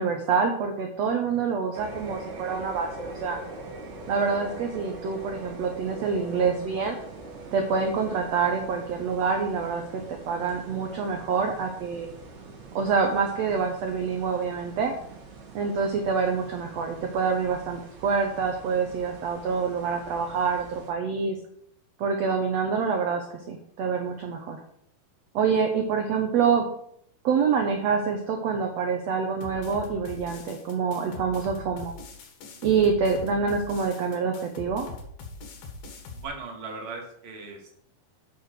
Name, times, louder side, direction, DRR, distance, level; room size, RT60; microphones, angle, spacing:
voice 1, 0.0-3.4 4.1-7.0 7.5-12.1 12.7-14.9 15.5-21.4 22.0-24.6 25.3-26.7 27.2-31.9 32.6-34.9, right 5 dB, 75° right, 4 dB, 1.6 m, -26 dB
sound 1, 1.7-20.9, right 2 dB, 50° right, 3.3 m, -43 dB
sound 2, 29.4-36.2, left 3 dB, 80° left, 3.5 m, -42 dB
voice 2, 36.1-37.7, right 3 dB, 25° right, 0 dB, 1.3 m, -38 dB
7.7 x 6.7 x 6.7 m, 0.70 s
omnidirectional pair, 4.3 m